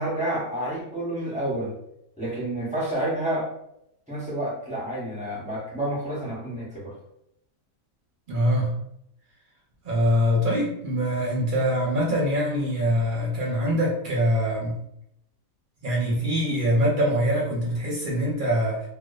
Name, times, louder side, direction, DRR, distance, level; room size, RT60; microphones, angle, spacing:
voice 1, 0.0-1.7 2.2-3.5 4.1-6.9, right 1 dB, 10° right, -7 dB, 0.4 m, -29 dB
voice 2, 8.3-8.7 9.8-14.8 15.8-18.9, equal, 55° right, -4 dB, 0.6 m, -24 dB
2.4 x 2.2 x 2.3 m, 0.77 s
omnidirectional pair, 1.4 m